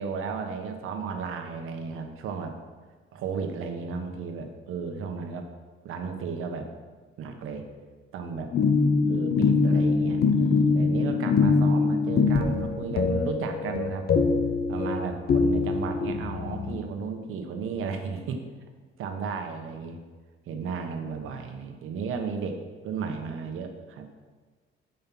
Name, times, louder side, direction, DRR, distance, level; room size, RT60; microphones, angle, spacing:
voice 1, 0.0-2.5 3.1-5.5 5.8-6.7 7.2-7.6 8.1-8.5 9.1-14.1 14.7-18.4 19.0-20.0 20.5-22.6 22.8-24.1, right 5 dB, 90° right, 5 dB, 1.2 m, -34 dB
sound 1, 8.5-16.8, left 4 dB, 50° left, 0.7 m, -23 dB
9.0 x 5.6 x 6.0 m, 1.4 s
cardioid pair, 150°, 21 cm